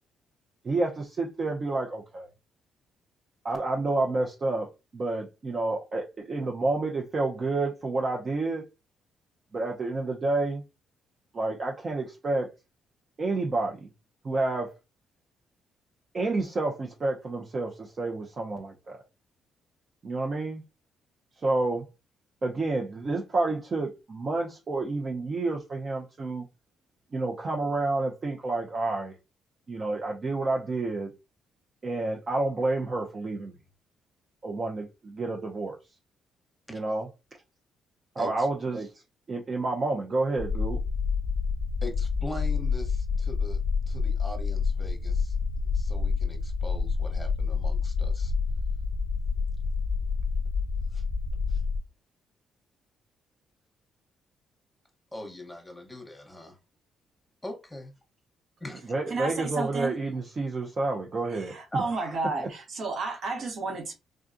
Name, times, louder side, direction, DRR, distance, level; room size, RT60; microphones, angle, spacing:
voice 1, 0.6-2.3 3.4-4.7 4.9-8.6 9.5-10.6 11.3-12.5 13.2-13.9 14.2-14.7 16.1-19.0 20.0-20.6 21.4-21.8 22.4-26.4 27.1-29.1 29.7-31.1 31.8-33.6 34.4-35.8 36.7-37.1 38.2-38.9 39.3-40.8 58.9-61.5 61.9-62.0, right 2 dB, 40° right, 0.6 m, -29 dB
voice 2, 38.2-38.5 41.8-43.6 43.9-48.3 50.9-51.0 51.5-51.6 55.1-56.6 57.4-57.9 58.6-58.8, left 1 dB, 10° left, 1.0 m, -42 dB
sound 1, 40.4-51.8, left 5 dB, 40° left, 0.3 m, -28 dB
voice 3, 59.1-60.0 61.3-63.9, right 3 dB, 60° right, 1.2 m, -32 dB
3.6 x 2.3 x 2.6 m
cardioid pair, 90°, 0 cm